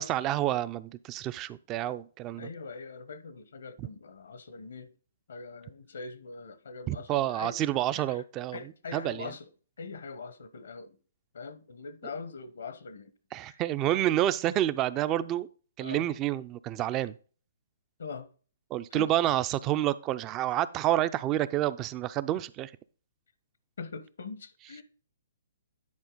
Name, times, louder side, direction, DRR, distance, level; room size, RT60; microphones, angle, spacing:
voice 1, 0.0-2.5 3.8-3.9 6.9-8.6 8.9-9.3 13.3-15.5 15.8-17.1 18.7-22.7, right 13 dB, 25° right, 0.4 m, -29 dB
voice 2, 2.4-4.9 5.3-7.7 7.9-8.2 8.5-9.5 9.8-11.0 11.3-13.1 13.4-13.6 13.9-14.0 15.8-16.1 18.0-18.3 18.9-19.1 23.8-24.8, left 4 dB, 75° left, 1.0 m, -42 dB
9.6 x 4.3 x 3.9 m
hypercardioid pair, 135°, 0 cm